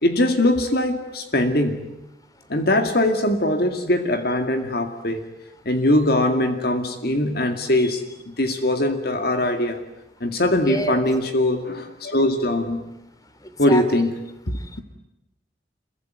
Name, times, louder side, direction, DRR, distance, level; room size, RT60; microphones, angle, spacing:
voice 1, 0.0-1.8 2.5-5.2 5.7-9.8 10.2-12.8 13.6-14.1, left 1 dB, 60° left, 7 dB, 2.2 m, -21 dB
voice 2, 10.6-11.0 13.4-13.8 14.6-14.8, left 1 dB, 20° left, 9 dB, 3.3 m, -29 dB
27.5 x 23.0 x 9.3 m, 0.91 s
head